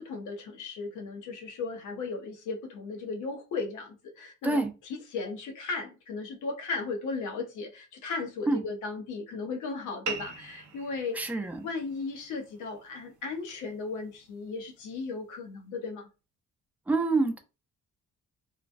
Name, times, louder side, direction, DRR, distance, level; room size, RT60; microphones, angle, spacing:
voice 1, 0.0-4.6 4.9-11.2 11.6-16.1, left 4 dB, 80° left, 1.0 m, -36 dB
sound 1, 10.1-15.1, right 6 dB, 70° right, 0.7 m, -44 dB
voice 2, 11.1-11.7 16.9-17.4, right 3 dB, 5° right, 0.6 m, -26 dB
3.1 x 2.2 x 2.5 m
cardioid pair, 90°, 30 cm